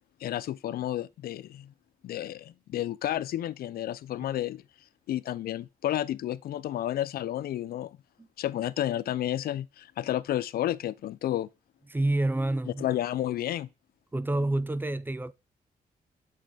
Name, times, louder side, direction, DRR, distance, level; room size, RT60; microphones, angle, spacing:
voice 1, 0.2-1.7 2.0-4.6 5.1-8.0 8.4-11.5 12.8-13.7, left 12 dB, 75° left, 0.4 m, -31 dB
voice 2, 11.9-12.9 14.1-15.3, right 2 dB, 15° right, 0.4 m, -28 dB
6.4 x 5.7 x 4.7 m
cardioid pair, 105°, 16 cm